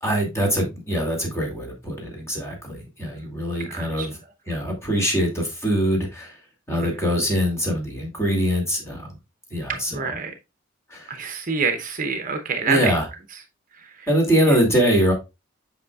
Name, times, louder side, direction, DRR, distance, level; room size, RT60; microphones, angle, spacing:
voice 1, 0.0-4.2 4.5-6.4 6.7-9.1 9.5-10.1 10.9-11.2 12.7-13.1 14.1-15.1, equal, 15° left, 0 dB, 2.4 m, -23 dB
voice 2, 3.6-4.1 6.8-6.9 9.9-10.3 11.1-12.9 13.8-14.1 14.4-14.6, right 5 dB, 40° right, 7 dB, 0.7 m, -27 dB
8.0 x 5.5 x 2.3 m, 0.25 s
head